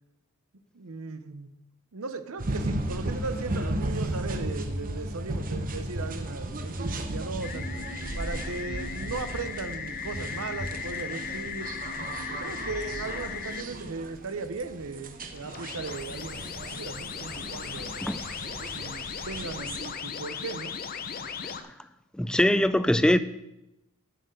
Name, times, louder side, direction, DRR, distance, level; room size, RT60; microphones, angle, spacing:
voice 1, 0.7-1.5 1.9-7.6 8.2-11.7 12.4-18.0 18.7-20.8, right 4 dB, 70° right, 0.8 m, -37 dB
sound 1, 2.4-19.9, right 1 dB, 40° right, 0.8 m, -35 dB
sound 2, 7.4-13.6 15.2-21.6, left 6 dB, 45° left, 0.6 m, -37 dB
voice 2, 22.2-23.2, left 1 dB, 5° left, 0.3 m, -22 dB
7.8 x 6.5 x 6.8 m
head